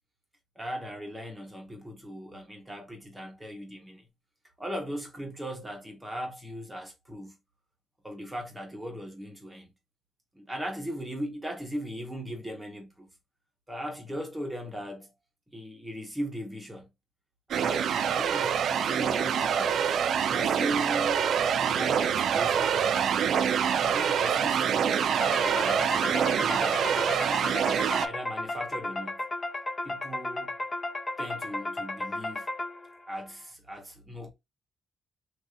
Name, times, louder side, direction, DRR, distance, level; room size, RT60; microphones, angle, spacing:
voice 1, 0.5-4.1 4.6-7.4 8.0-9.7 10.3-13.1 13.7-15.1 15.5-16.9 17.6-19.8 20.2-21.3 21.6-23.2 23.8-27.5 28.0-29.2 29.8-30.5 31.2-32.5 33.1-34.3, equal, 10° right, 1.3 m, -38 dB
sound 1, 17.5-28.1, right 8 dB, 65° right, 0.3 m, -26 dB
sound 2, 25.2-33.1, left 2 dB, 25° left, 0.6 m, -34 dB
3.0 x 2.7 x 2.5 m
cardioid pair, 90°, 0 cm